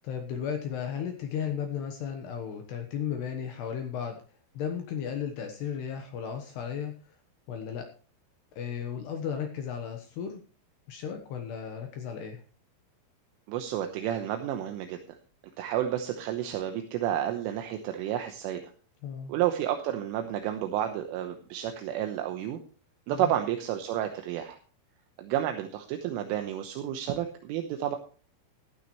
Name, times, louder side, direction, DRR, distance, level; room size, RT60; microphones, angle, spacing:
voice 1, 0.0-4.2 4.5-6.9 7.5-7.9 8.6-10.4 10.9-12.4 19.0-19.3 23.1-23.3, left 8 dB, 70° left, 5 dB, 2.7 m, -34 dB
voice 2, 13.5-15.0 15.6-18.6 19.3-22.6 23.1-24.6 25.2-28.0, right 11 dB, 80° right, 5 dB, 3.4 m, -31 dB
15.0 x 12.5 x 3.1 m, 0.39 s
omnidirectional pair, 6.0 m